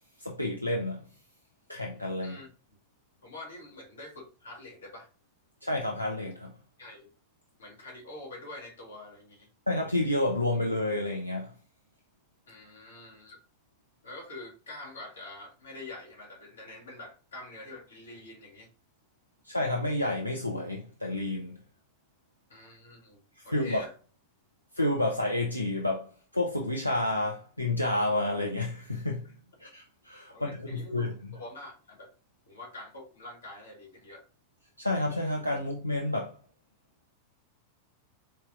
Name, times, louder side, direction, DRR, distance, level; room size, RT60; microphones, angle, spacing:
voice 1, 0.2-1.1 1.7-2.4 5.6-6.5 9.7-11.5 19.4-21.6 23.4-23.8 24.7-29.3 29.6-31.1 34.8-36.4, left 1 dB, 90° left, 0.5 m, -30 dB
voice 2, 3.2-5.1 6.8-7.1 7.6-9.5 12.5-13.4 14.0-18.7 22.5-23.9 30.3-32.1 32.5-34.2, left 2 dB, 65° left, 1.3 m, -46 dB
4.3 x 3.3 x 2.4 m
figure-of-eight pair, 90°, 0 cm